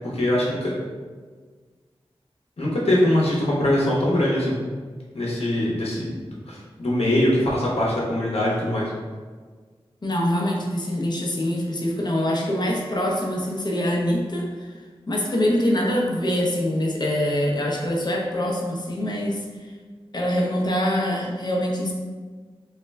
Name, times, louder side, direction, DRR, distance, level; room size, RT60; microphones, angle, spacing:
voice 1, 0.1-0.7 2.6-4.6 5.1-8.9, left 1 dB, 75° left, -4 dB, 0.8 m, -22 dB
voice 2, 10.0-19.4 20.1-21.9, left 1 dB, 45° left, -1 dB, 0.5 m, -24 dB
3.2 x 2.1 x 3.3 m, 1.5 s
wide cardioid pair, 75°, 10 cm